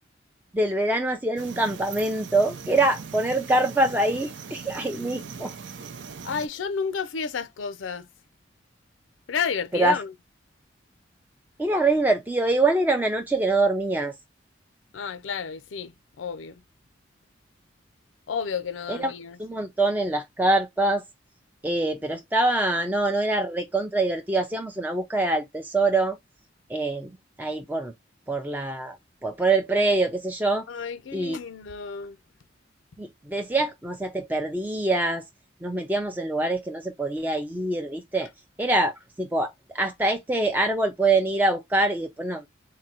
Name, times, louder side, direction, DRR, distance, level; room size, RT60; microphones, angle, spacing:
voice 1, 0.5-5.5 9.7-10.0 11.6-14.1 18.9-19.1 19.4-21.0 21.6-26.2 26.7-27.9 28.3-29.0 29.2-30.7 31.1-31.4 33.0-35.2 35.6-38.3 38.6-42.5, right 2 dB, 10° right, 0.4 m, -24 dB
sound 1, 1.4-6.5, right 5 dB, 70° right, 0.6 m, -40 dB
voice 2, 6.2-8.1 9.3-10.1 14.9-16.6 18.3-19.4 30.7-32.2, left 6 dB, 85° left, 0.5 m, -31 dB
3.8 x 2.2 x 4.2 m
head